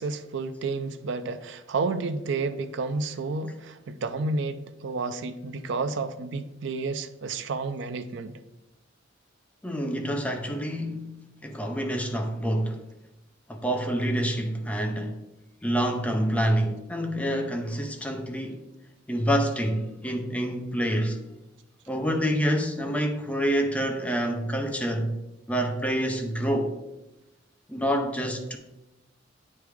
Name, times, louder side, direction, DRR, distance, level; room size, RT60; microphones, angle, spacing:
voice 1, 0.0-8.3, right 3 dB, 65° right, 0.4 m, -31 dB
voice 2, 9.6-11.1 11.4-12.8 13.5-15.2 15.6-18.6 19.1-21.2 21.9-25.1 25.5-26.8 27.7-28.6, equal, 5° left, 0.6 m, -27 dB
9.0 x 3.2 x 3.5 m
head